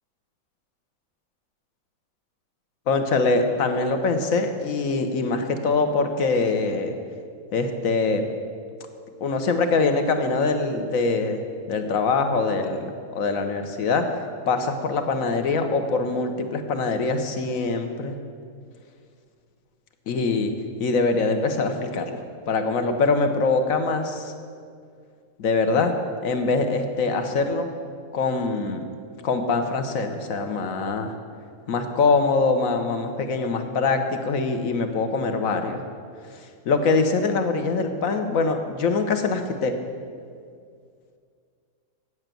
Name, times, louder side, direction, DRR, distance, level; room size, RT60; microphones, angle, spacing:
voice 1, 2.9-6.9 7.5-8.2 9.2-11.4 11.7-14.0 14.5-18.2 20.1-20.5 20.8-24.3 25.4-25.9 26.2-27.7 28.1-28.8 29.2-31.1 31.7-35.8 36.6-39.7, left 4 dB, 65° left, 6 dB, 1.3 m, -23 dB
8.0 x 8.0 x 8.9 m, 2.2 s
omnidirectional pair, 1.6 m